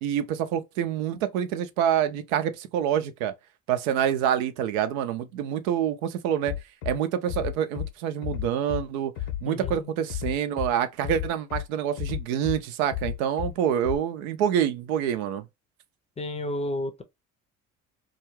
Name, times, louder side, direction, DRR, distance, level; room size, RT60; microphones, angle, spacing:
voice 1, 0.0-3.3 3.7-6.5 6.9-9.1 9.4-15.4, right 9 dB, 85° right, 0.5 m, -27 dB
Bass drum, 6.5-6.9 7.3-7.9 8.2-8.8 9.2-9.8 10.1-10.7 11.0-11.6 12.0-12.6 12.9-13.5 13.8-13.9, left 12 dB, 70° left, 0.7 m, -31 dB
voice 2, 9.5-9.9 16.2-17.0, left 1 dB, 15° left, 0.5 m, -32 dB
2.3 x 2.3 x 3.0 m
hypercardioid pair, 65°, 41 cm